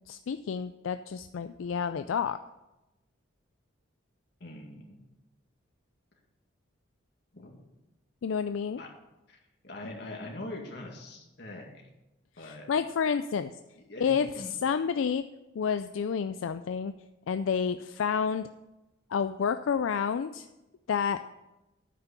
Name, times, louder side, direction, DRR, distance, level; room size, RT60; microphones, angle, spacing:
voice 1, 0.1-2.4 8.2-8.8 12.4-13.5 14.0-15.2 15.6-16.9 17.3-18.5 19.1-20.5 20.9-21.2, left 6 dB, 80° left, 10 dB, 0.4 m, -29 dB
voice 2, 4.4-5.0 7.3-7.6 8.8-8.9 9.3-9.4 9.6-11.8 12.4-12.7 13.7-14.5, left 2 dB, 55° left, 0 dB, 2.1 m, -42 dB
9.3 x 5.9 x 8.1 m, 0.98 s
head